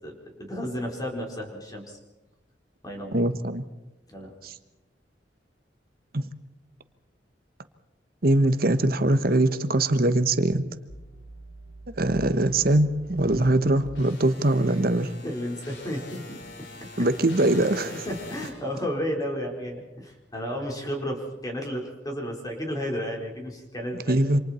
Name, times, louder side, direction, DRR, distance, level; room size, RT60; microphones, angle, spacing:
voice 1, 0.0-2.0 2.8-3.2 4.1-4.3 14.7-14.8 15.2-16.4 16.9-17.1 17.5-17.7 18.0-24.2, equal, 20° left, 4.5 m, -33 dB
voice 2, 3.1-3.7 4.4-4.5 6.1-6.2 8.2-10.7 12.0-15.1 17.0-17.9 24.1-24.4, right 1 dB, 55° right, 1.2 m, -22 dB
sound 1, 10.9-18.5, left 1 dB, 90° left, 4.9 m, -43 dB
28.0 x 27.0 x 4.4 m
head